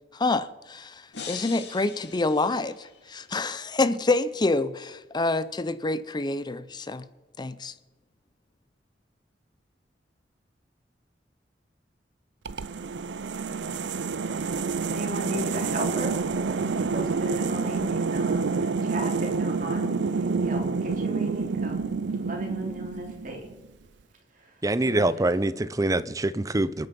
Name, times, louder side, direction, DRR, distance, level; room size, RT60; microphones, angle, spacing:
voice 1, 0.1-7.0 7.4-7.7, left 2 dB, 25° left, 0.6 m, -27 dB
sound 1, 1.1-3.3, left 6 dB, 70° left, 2.2 m, -42 dB
sound 2, 12.5-23.5, right 4 dB, 70° right, 0.6 m, -28 dB
voice 2, 14.9-16.2 16.5-19.9 20.4-23.4 24.8-25.1, right 1 dB, 50° right, 3.5 m, -35 dB
voice 3, 24.6-26.9, right 2 dB, 20° right, 0.5 m, -25 dB
26.0 x 9.4 x 5.4 m
head